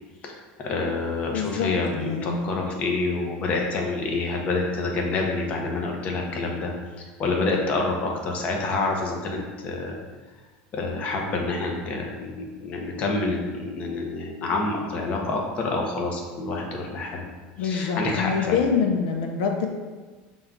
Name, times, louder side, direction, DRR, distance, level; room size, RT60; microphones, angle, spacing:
voice 1, 0.6-6.7 7.0-10.0 10.7-17.2 17.6-18.6, left 3 dB, 35° left, 0 dB, 0.7 m, -27 dB
voice 2, 1.3-2.5 17.6-19.7, left 6 dB, 85° left, 3 dB, 0.4 m, -25 dB
5.4 x 2.3 x 3.6 m, 1.3 s
cardioid pair, 155°, 4 cm